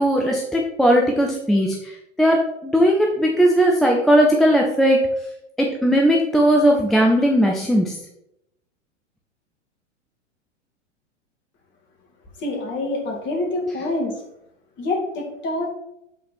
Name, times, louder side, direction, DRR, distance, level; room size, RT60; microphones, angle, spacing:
voice 1, 0.0-5.0 5.6-8.0, equal, ahead, 0 dB, 0.3 m, -18 dB
voice 2, 12.4-14.2 14.8-15.7, left 2 dB, 30° left, 1 dB, 2.3 m, -26 dB
7.9 x 4.1 x 6.0 m, 0.80 s
figure-of-eight pair, 95°, 37 cm